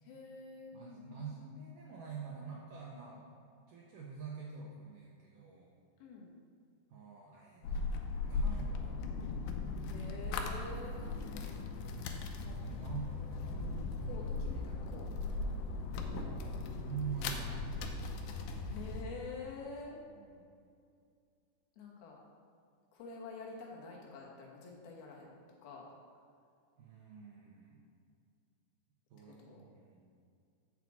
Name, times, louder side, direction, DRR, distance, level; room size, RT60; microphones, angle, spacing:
voice 1, 0.0-1.2 6.0-6.4 9.8-11.7 12.4-12.6 14.0-15.5 18.6-20.0 21.8-22.2 22.9-25.4 25.6-25.9 29.4-29.6, left 4 dB, 70° left, -2 dB, 2.9 m, -48 dB
voice 2, 0.7-3.2 3.7-5.7 6.9-7.9 8.2-9.0 11.2-11.4 12.0-12.2 12.6-13.4 16.0-17.8 20.2-20.5 26.8-27.8 29.1-30.0, right 6 dB, 75° right, -3 dB, 1.9 m, -46 dB
sound 1, 7.6-19.1, left 3 dB, 85° left, 2.9 m, -38 dB
6.7 x 6.1 x 7.2 m, 2.3 s
omnidirectional pair, 5.0 m